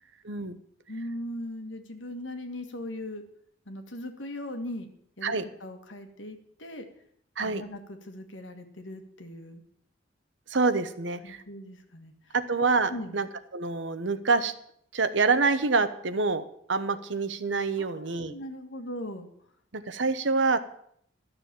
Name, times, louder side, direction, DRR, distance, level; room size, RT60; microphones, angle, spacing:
voice 1, 0.2-0.6 5.2-5.4 7.4-7.6 10.5-11.4 12.3-13.3 13.5-14.5 14.9-16.4 16.7-18.3 19.7-20.6, right 4 dB, 75° right, 11 dB, 1.0 m, -26 dB
voice 2, 0.9-3.2 3.6-4.9 5.2-5.3 5.6-6.9 7.4-9.6 11.2-12.4 12.9-13.2 17.8-19.3, left 1 dB, 80° left, 6 dB, 1.8 m, -39 dB
12.5 x 6.9 x 8.8 m, 0.67 s
head